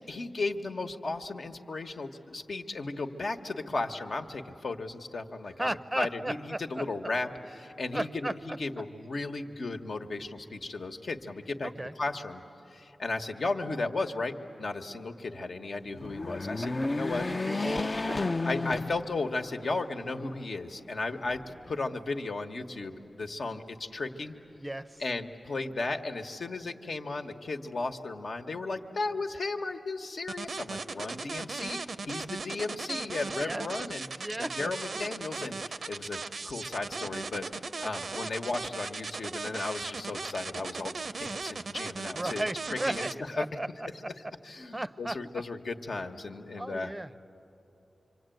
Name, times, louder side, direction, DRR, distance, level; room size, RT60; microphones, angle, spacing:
voice 1, 0.1-7.3 7.6-12.4 12.7-17.3 18.5-24.4 25.0-31.8 32.1-37.5 37.8-43.1 43.4-43.5 44.4-46.9, left 3 dB, 70° left, 4 dB, 1.2 m, -35 dB
voice 2, 5.6-7.1 7.9-8.6 11.6-11.9 16.6-16.9 17.2-18.4 24.6-25.0 33.4-33.7 34.2-34.7 42.1-44.1 44.7-45.2 46.6-47.3, right 1 dB, 20° right, 14 dB, 0.6 m, -36 dB
sound 1, 15.9-19.5 20.0-20.1 21.2-22.0, left 3 dB, 40° left, 0.5 m, -32 dB
sound 2, 30.3-43.1, right 4 dB, 65° right, 0.6 m, -37 dB
25.5 x 25.0 x 9.1 m, 3.0 s
wide cardioid pair, 70°, 0 cm